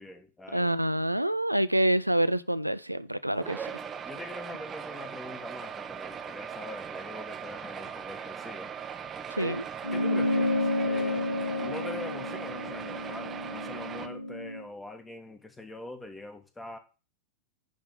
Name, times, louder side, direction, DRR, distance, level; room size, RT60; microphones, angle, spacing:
voice 1, 0.0-0.7 3.5-3.7 4.0-8.7 9.4-9.6 9.9-11.3 11.6-16.8, left 2 dB, 10° left, 1.4 m, -43 dB
voice 2, 0.5-3.7 9.3-9.6, right 1 dB, 90° right, 0.3 m, -27 dB
sound 1, 3.3-14.1, right 7 dB, 20° right, 0.8 m, -39 dB
sound 2, 9.8-14.6, left 1 dB, 85° left, 0.5 m, -30 dB
10.5 x 3.5 x 6.6 m
figure-of-eight pair, 90°, 0 cm